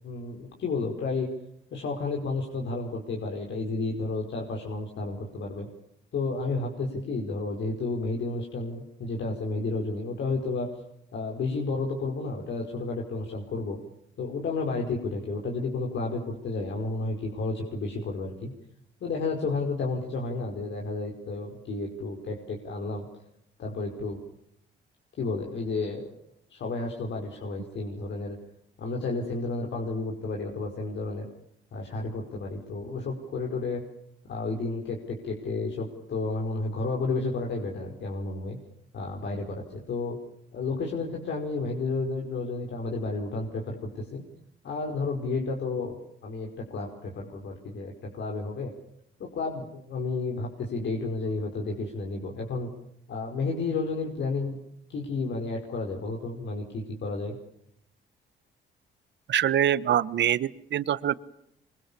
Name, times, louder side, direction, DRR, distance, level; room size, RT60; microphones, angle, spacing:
voice 1, 0.0-1.3 1.7-5.7 6.1-10.8 11.1-13.8 14.2-18.5 19.0-23.0 23.6-24.2 25.2-26.1 26.5-28.4 28.8-31.3 31.7-33.8 34.3-38.6 38.9-40.2 40.5-44.2 44.6-46.0 46.2-48.7 49.2-52.7 53.1-54.5 54.9-57.4, left 3 dB, 65° left, 0 dB, 5.1 m, -31 dB
voice 2, 59.3-61.1, right 10 dB, 65° right, 16 dB, 1.3 m, -24 dB
26.5 x 24.0 x 7.1 m, 0.75 s
cardioid pair, 90°, 20 cm